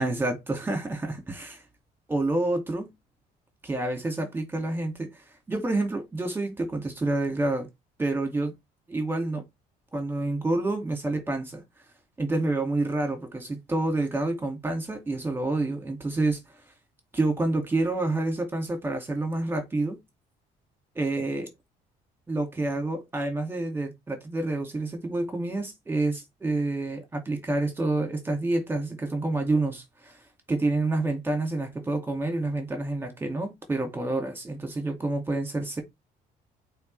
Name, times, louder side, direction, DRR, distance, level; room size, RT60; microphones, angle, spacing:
voice 1, 0.0-1.6 2.1-2.9 3.6-5.2 5.5-7.7 8.0-8.5 8.9-9.4 9.9-11.6 12.2-16.4 17.1-20.0 21.0-21.5 22.3-30.2 30.5-35.8, right 2 dB, 15° right, 2.3 m, -28 dB
8.6 x 3.8 x 3.4 m
cardioid pair, 110°, 17 cm